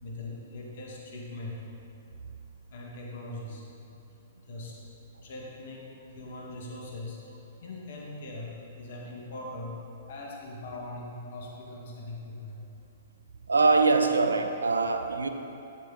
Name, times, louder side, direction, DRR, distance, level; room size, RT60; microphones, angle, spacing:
voice 1, 0.0-1.7 2.7-3.7 4.1-4.2 4.4-4.8 5.2-9.8 10.1-12.7, left 2 dB, 65° left, -2 dB, 1.8 m, -41 dB
voice 2, 13.5-15.3, right 3 dB, 85° right, 7 dB, 0.7 m, -23 dB
12.0 x 7.8 x 3.9 m, 2.7 s
hypercardioid pair, 120°, 0 cm